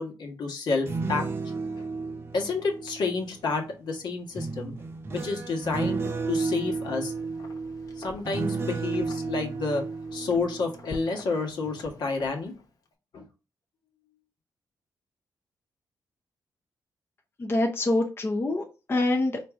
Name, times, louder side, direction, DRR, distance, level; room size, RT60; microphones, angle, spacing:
voice 1, 0.0-1.5 2.3-4.7 5.1-7.1 8.0-9.8 10.1-12.5 13.1-13.2, left 4 dB, 75° left, 1 dB, 1.3 m, -30 dB
sound 1, 0.7-3.6 4.3-11.3 11.6-12.0, right 4 dB, 30° right, 0.7 m, -33 dB
Wind, 6.4-12.9, left 2 dB, 50° left, 0.9 m, -49 dB
voice 2, 17.4-19.4, left 2 dB, 30° left, 3 dB, 0.6 m, -25 dB
4.6 x 2.6 x 3.5 m, 0.31 s
cardioid pair, 110°, 8 cm